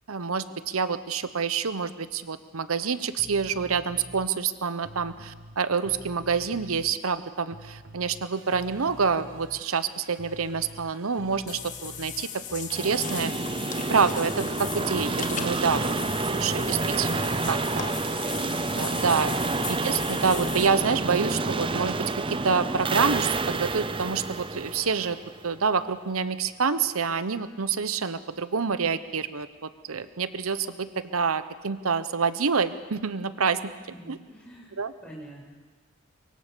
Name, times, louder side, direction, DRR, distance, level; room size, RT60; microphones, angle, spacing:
voice 1, 0.1-13.3 13.9-15.9 16.2-17.9 18.3-18.5 18.7-19.3 19.7-25.2 25.4-33.6 34.1-34.2 34.7-34.9, right 5 dB, 90° right, 13 dB, 0.9 m, -27 dB
sound 1, 3.2-4.3 4.8-7.2 7.5-13.8, right 2 dB, 60° right, 1.0 m, -48 dB
Water / Bathtub (filling or washing), 11.5-20.7, left 9 dB, 35° left, 1.3 m, -38 dB
sound 2, 12.7-25.6, right 3 dB, 25° right, 0.6 m, -29 dB
voice 2, 33.9-34.7 35.0-35.5, right 1 dB, 5° left, -4 dB, 7.2 m, -45 dB
24.5 x 23.5 x 6.8 m, 1.4 s
head